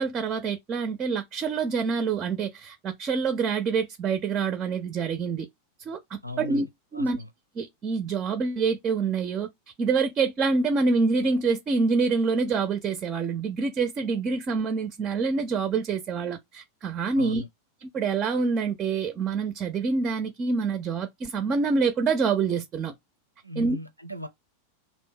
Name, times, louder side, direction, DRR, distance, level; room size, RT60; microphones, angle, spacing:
voice 1, 0.0-5.5 5.9-6.7 6.9-7.2 7.6-9.5 9.8-17.4 17.8-22.9 23.6-23.8, right 4 dB, 30° right, 0.4 m, -26 dB
voice 2, 6.2-6.7 6.9-7.3 17.2-17.5 23.4-24.3, left 1 dB, 90° right, 0.5 m, -37 dB
2.7 x 2.0 x 3.7 m
figure-of-eight pair, 90°, 0 cm